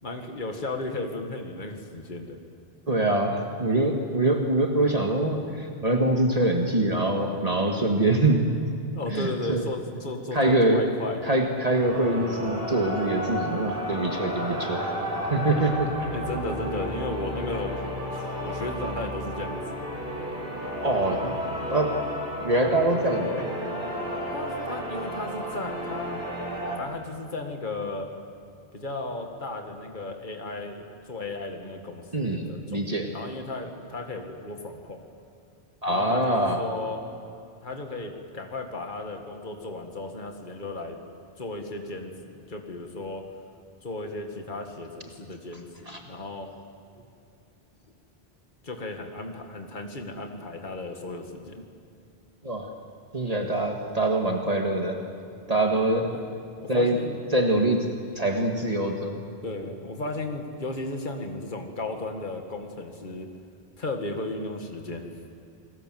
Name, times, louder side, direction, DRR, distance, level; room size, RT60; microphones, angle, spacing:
voice 1, 0.0-2.4 8.9-11.2 15.6-15.8 16.1-17.8 18.1-19.6 24.3-26.2 26.8-28.1 28.7-35.0 35.9-37.0 37.6-41.0 41.4-43.2 43.8-46.5 48.6-51.7 56.0-56.2 56.6-57.2 59.4-63.3 63.8-65.1, left 2 dB, 50° left, 4 dB, 2.1 m, -35 dB
voice 2, 2.9-8.5 9.1-9.6 10.3-10.8 11.2-14.9 15.3-16.1 20.8-21.3 21.7-22.0 22.4-23.5 32.1-33.1 35.8-36.6 45.9-46.0 52.4-52.7 53.1-55.0 55.5-56.1 56.7-57.0 57.3-57.9 58.2-59.2, right 1 dB, 40° right, 1 dB, 1.9 m, -24 dB
sound 1, 11.7-26.8, equal, 60° right, 5.7 m, -32 dB
29.0 x 20.5 x 7.7 m, 2.6 s
omnidirectional pair, 1.1 m